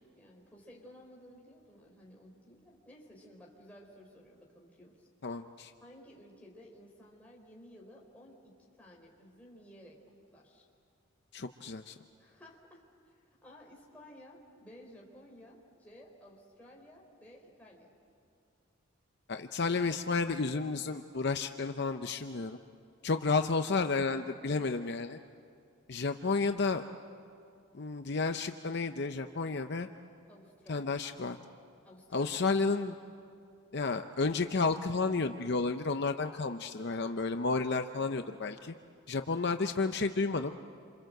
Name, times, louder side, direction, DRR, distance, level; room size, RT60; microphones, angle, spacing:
voice 1, 0.2-5.1 5.8-10.0 10.3-10.7 12.2-17.9 30.3-30.9 31.8-32.5, equal, 5° left, -3 dB, 4.4 m, -55 dB
voice 2, 5.2-5.7 11.3-11.9 19.3-22.6 23.0-25.2 25.9-26.8 27.7-29.9 30.7-31.4 32.1-33.0 33.7-38.7 39.1-40.5, left 4 dB, 55° left, 7 dB, 0.7 m, -31 dB
28.0 x 27.0 x 7.9 m, 2.4 s
head